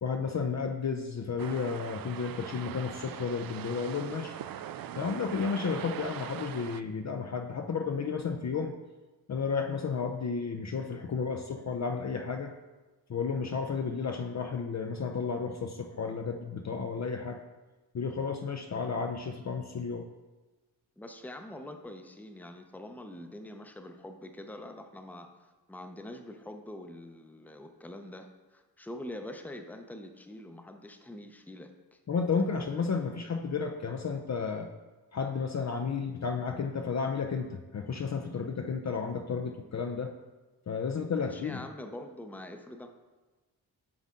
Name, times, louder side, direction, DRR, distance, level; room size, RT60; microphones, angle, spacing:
voice 1, 0.0-4.4 5.0-8.7 9.3-12.5 13.1-17.4 17.9-20.1 32.1-34.7 35.1-40.1 40.7-41.6, left 5 dB, 35° left, 4 dB, 0.6 m, -32 dB
sound 1, 1.4-6.8, right 10 dB, 50° right, 0.4 m, -41 dB
voice 2, 21.0-32.0 41.1-42.9, left 1 dB, 5° left, 5 dB, 0.7 m, -45 dB
7.8 x 4.0 x 3.7 m, 1.2 s
supercardioid pair, 50°, 46 cm